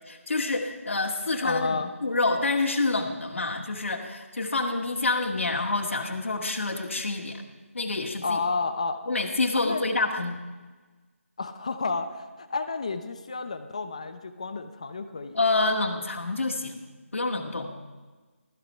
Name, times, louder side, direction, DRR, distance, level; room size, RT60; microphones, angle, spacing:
voice 1, 0.1-1.8 2.0-7.4 7.7-8.4 9.1-10.4 15.3-16.8 17.1-17.7, left 3 dB, 60° left, 0 dB, 2.1 m, -27 dB
voice 2, 1.4-1.9 8.2-9.0 9.5-9.9 11.4-15.4, left 4 dB, 25° left, 9 dB, 0.7 m, -31 dB
16.5 x 14.0 x 5.6 m, 1.3 s
figure-of-eight pair, 175°, 8 cm